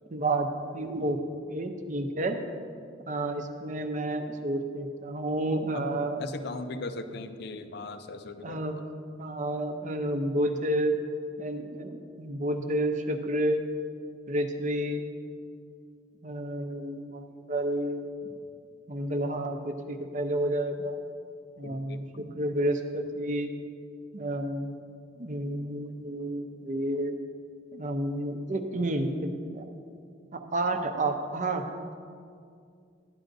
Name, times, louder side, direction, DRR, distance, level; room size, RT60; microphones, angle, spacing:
voice 1, 0.1-0.5 0.7-1.2 1.5-2.4 3.1-6.2 8.4-8.8 9.2-11.0 11.4-13.6 14.3-15.0 16.2-18.1 18.9-21.0 21.6-23.5 24.1-24.8 25.2-27.2 27.7-29.6 30.3-31.6, right 1 dB, 40° right, 6 dB, 0.6 m, -30 dB
voice 2, 5.7-8.7 21.6-22.1, left 2 dB, 55° left, 9 dB, 0.5 m, -39 dB
12.0 x 10.0 x 2.6 m, 2.3 s
head